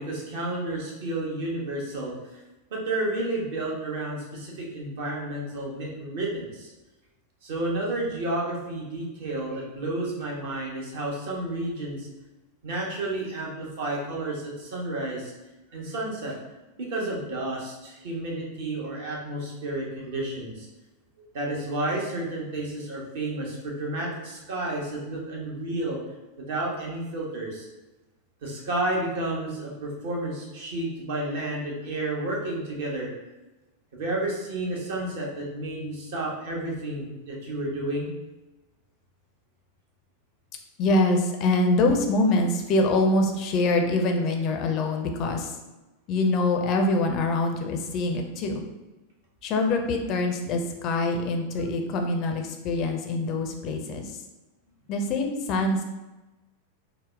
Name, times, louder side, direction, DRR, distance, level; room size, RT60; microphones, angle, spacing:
voice 1, 0.0-2.4 2.7-6.7 7.4-12.1 12.6-15.3 15.7-16.3 16.8-20.7 21.3-26.0 26.4-27.7 28.4-33.1 33.9-38.1, right 2 dB, 55° right, -3 dB, 0.9 m, -31 dB
voice 2, 40.8-45.6 46.1-48.6 49.4-54.2 54.9-55.8, left 2 dB, 40° left, 4 dB, 0.5 m, -24 dB
3.9 x 2.0 x 3.5 m, 1.1 s
figure-of-eight pair, 90°, 0 cm